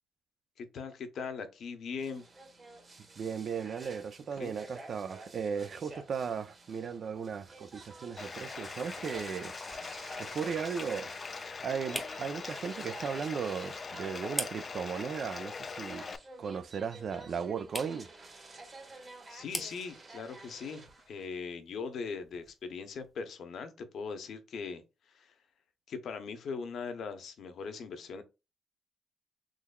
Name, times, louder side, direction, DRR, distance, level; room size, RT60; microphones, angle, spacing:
voice 1, 0.6-2.2 4.4-4.5 19.3-24.8 25.1-25.3 25.9-28.2, left 5 dB, 65° left, 0.7 m, -40 dB
sound 1, 2.0-21.3, right 3 dB, 35° right, 1.4 m, -51 dB
voice 2, 3.2-9.5 10.2-11.1 11.6-16.1 16.4-18.1, right 6 dB, 55° right, 0.4 m, -36 dB
Bathtub (filling or washing), 8.2-16.2, left 4 dB, 35° left, 0.3 m, -42 dB
sound 2, 8.4-23.2, equal, ahead, 0.8 m, -47 dB
3.8 x 3.1 x 2.2 m
cardioid pair, 90°, 0 cm